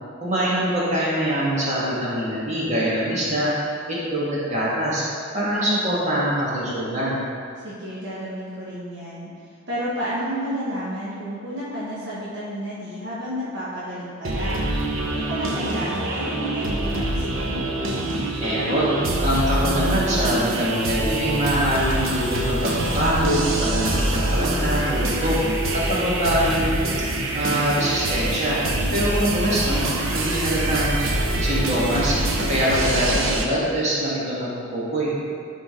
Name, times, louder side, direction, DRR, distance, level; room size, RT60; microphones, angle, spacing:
voice 1, 0.2-3.5 3.9-5.0 5.3-7.2 18.4-19.0 19.2-25.4 25.7-26.9 27.3-28.6 28.9-29.8 30.1-31.0 31.4-32.2 32.5-35.3, equal, 35° right, -7 dB, 1.8 m, -24 dB
voice 2, 7.6-9.3 9.7-14.7 15.1-17.6 28.5-28.9, equal, 60° right, -9 dB, 1.3 m, -31 dB
sound 1, 14.2-33.5, right 1 dB, 80° right, 0.8 m, -25 dB
11.0 x 3.8 x 3.7 m, 2.3 s
head